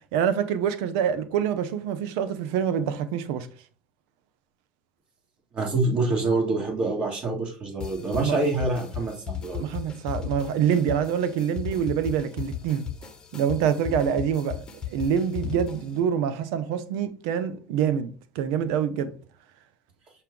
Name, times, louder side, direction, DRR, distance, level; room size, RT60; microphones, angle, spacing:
voice 1, 0.1-3.5 8.2-8.4 9.6-12.9 13.3-19.1, right 8 dB, 75° right, 0.5 m, -26 dB
voice 2, 5.5-9.6, right 2 dB, 40° right, 1.9 m, -26 dB
sound 1, 7.8-16.0, left 9 dB, 30° left, 0.9 m, -36 dB
5.6 x 2.3 x 3.7 m
supercardioid pair, 90°, 3 cm